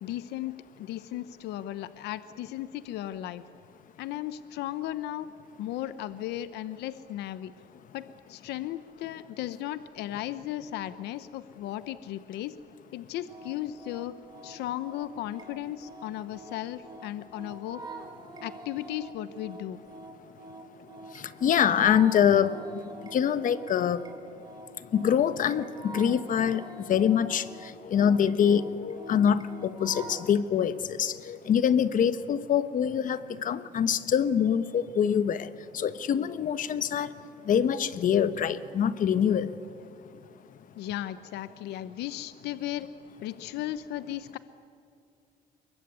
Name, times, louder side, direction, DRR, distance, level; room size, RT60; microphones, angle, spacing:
voice 1, 0.0-3.4 4.0-5.3 5.6-7.5 7.9-12.6 12.9-14.2 14.4-17.8 18.4-19.8 40.8-42.9 43.2-44.4, left 13 dB, 80° left, 14 dB, 0.9 m, -36 dB
sound 1, 13.3-30.3, right 2 dB, 25° right, 3.2 m, -46 dB
voice 2, 21.2-22.6 23.1-24.0 24.9-27.5 27.9-35.5 35.7-37.1 37.5-39.5, left 8 dB, 50° left, 14 dB, 1.2 m, -25 dB
24.0 x 22.0 x 9.5 m, 2.4 s
cardioid pair, 110°, 17 cm